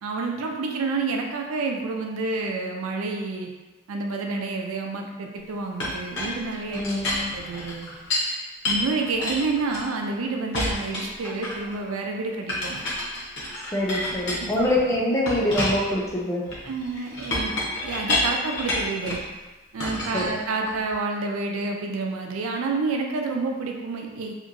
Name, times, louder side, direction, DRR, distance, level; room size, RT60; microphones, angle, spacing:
voice 1, 0.0-3.5 3.9-6.9 7.3-7.9 8.7-12.8 14.4-14.6 16.7-17.6 17.8-19.2 19.7-24.3, right 3 dB, 80° right, 2 dB, 0.4 m, -29 dB
Chink clink, 5.8-8.3 8.6-10.1 10.5-11.8 12.5-14.8 15.3-19.3 19.8-20.9, left 1 dB, 55° left, 0.7 m, -29 dB
voice 2, 6.7-7.3 13.7-16.4 20.1-20.4, left 1 dB, 15° left, -4 dB, 0.4 m, -25 dB
2.9 x 2.6 x 2.5 m, 1.2 s
head